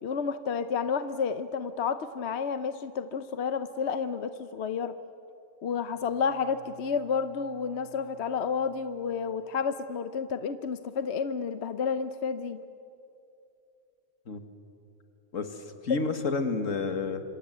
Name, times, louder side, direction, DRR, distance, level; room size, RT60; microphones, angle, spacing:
voice 1, 0.0-5.0 5.6-12.6 15.9-16.0, left 6 dB, 60° left, 11 dB, 1.0 m, -30 dB
Bowed string instrument, 5.9-9.4, right 4 dB, 20° left, 7.3 m, -56 dB
voice 2, 15.3-17.2, left 4 dB, 80° left, 8 dB, 2.2 m, -30 dB
27.0 x 26.5 x 8.1 m, 2.7 s
omnidirectional pair, 1.3 m